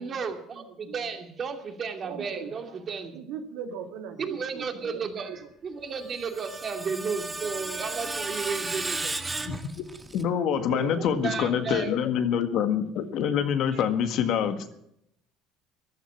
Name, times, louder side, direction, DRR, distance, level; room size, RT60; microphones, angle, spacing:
voice 1, 0.0-3.1 4.2-9.1 11.2-11.9 13.7-13.8, right 5 dB, 40° right, 5 dB, 2.6 m, -33 dB
voice 2, 0.5-1.0 2.0-2.8 3.1-5.5 10.2-11.3 12.0-12.1, right 8 dB, 85° right, 4 dB, 2.5 m, -40 dB
Screech, 5.9-10.2, right 3 dB, 15° right, 1.2 m, -34 dB
voice 3, 9.5-9.8 10.1-14.6, left 8 dB, 65° left, 8 dB, 1.7 m, -26 dB
14.5 x 11.5 x 7.1 m, 0.75 s
supercardioid pair, 105°, 0 cm